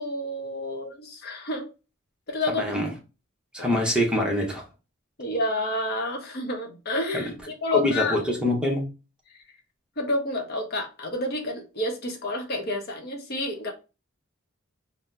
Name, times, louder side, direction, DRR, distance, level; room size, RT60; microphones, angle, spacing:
voice 1, 0.0-1.7 2.3-2.8 3.6-3.7 5.2-8.2 10.0-13.7, left 2 dB, 50° left, 0.7 m, -29 dB
voice 2, 2.6-2.9 3.5-4.7 7.1-7.2 7.7-8.9, left 1 dB, 5° right, 0.7 m, -24 dB
2.7 x 2.0 x 3.3 m
head